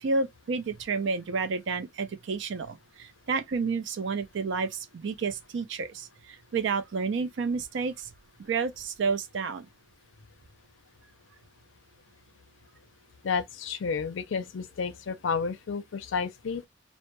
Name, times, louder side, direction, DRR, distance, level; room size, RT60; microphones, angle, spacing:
voice 1, 0.0-6.1 6.5-8.1 8.4-9.7, right 4 dB, 65° right, 0.4 m, -30 dB
voice 2, 13.2-16.7, left 5 dB, 70° left, 0.4 m, -31 dB
2.1 x 2.1 x 2.9 m
head